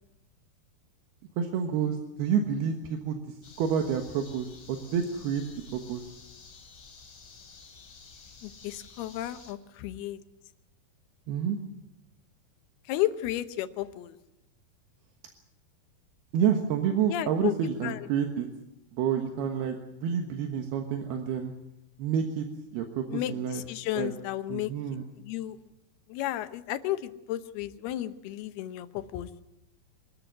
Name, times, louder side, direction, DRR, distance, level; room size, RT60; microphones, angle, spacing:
voice 1, 1.4-5.4 5.7-6.0 11.3-11.6 16.3-18.5 18.9-21.5 22.0-23.6 23.9-24.1 24.5-25.1, right 7 dB, 80° right, 4 dB, 3.4 m, -29 dB
sound 1, 3.4-9.5, left 5 dB, 40° left, 3.6 m, -51 dB
voice 2, 8.4-10.2 12.9-14.2 17.1-17.5 17.8-18.0 23.1-24.7 25.2-25.6 26.1-29.4, left 14 dB, 85° left, 11 dB, 3.0 m, -33 dB
24.5 x 14.0 x 9.3 m, 0.89 s
omnidirectional pair, 4.5 m